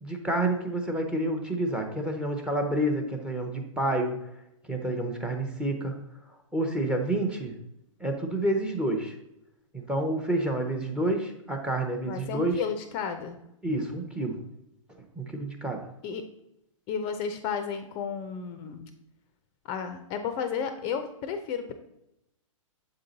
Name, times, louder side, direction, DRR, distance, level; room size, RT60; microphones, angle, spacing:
voice 1, 0.0-4.2 4.7-5.9 6.5-7.5 8.0-9.2 9.7-12.6 13.6-14.4 15.2-15.8, right 1 dB, 5° right, 4 dB, 0.7 m, -29 dB
voice 2, 12.1-13.4 16.0-16.2 16.9-18.9 19.6-21.8, left 6 dB, 30° left, 8 dB, 0.5 m, -33 dB
7.4 x 3.8 x 3.9 m, 0.85 s
hypercardioid pair, 135°, 17 cm